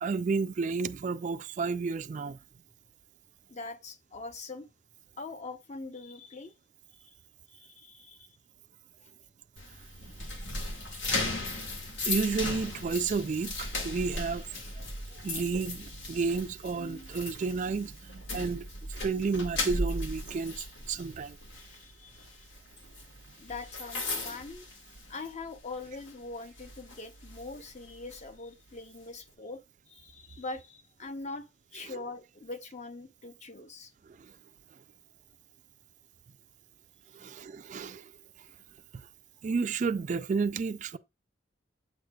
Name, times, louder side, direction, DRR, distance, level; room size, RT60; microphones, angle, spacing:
voice 1, 0.0-2.4 10.4-10.5 12.1-14.6 15.1-18.6 19.0-21.4 37.1-38.0 39.4-41.0, right 4 dB, 40° right, 0.3 m, -31 dB
voice 2, 3.5-4.7 5.2-6.5 7.5-8.3 10.2-10.3 21.6-22.5 23.4-24.7 25.1-29.6 29.9-33.9 37.2-37.3, left 3 dB, 35° left, 0.7 m, -43 dB
sound 1, 9.6-25.5 25.8-26.1 26.6-28.2, left 2 dB, 80° left, 1.6 m, -37 dB
8.6 x 6.4 x 2.3 m
head